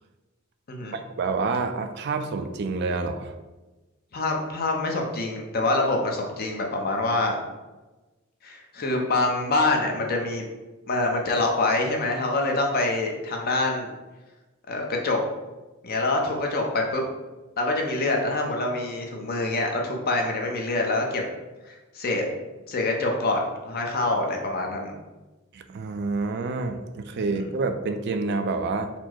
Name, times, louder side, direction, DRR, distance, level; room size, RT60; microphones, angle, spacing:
voice 1, 0.9-3.3 25.5-28.9, right 3 dB, 50° right, 7 dB, 0.3 m, -28 dB
voice 2, 4.1-7.4 8.4-10.5 10.9-13.9 14.7-15.2 15.8-17.0 17.6-21.2 21.7-22.2 22.7-24.9, left 2 dB, 45° left, 1 dB, 0.7 m, -25 dB
4.2 x 2.1 x 4.4 m, 1.1 s
head